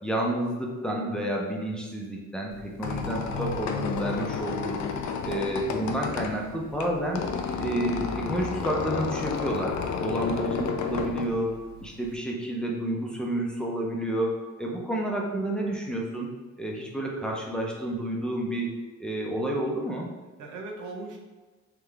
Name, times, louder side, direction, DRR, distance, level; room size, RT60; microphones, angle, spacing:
voice 1, 0.0-4.8 5.2-7.2 7.6-11.5 11.8-16.3 16.6-18.7 19.0-20.1, right 1 dB, 5° left, -2 dB, 0.8 m, -30 dB
Squeak, 2.5-12.1, left 6 dB, 65° left, 0.5 m, -32 dB
voice 2, 10.2-10.7 20.4-21.2, right 3 dB, 80° right, 1 dB, 0.8 m, -39 dB
3.6 x 3.4 x 3.4 m, 1.3 s
cardioid pair, 90°, 30 cm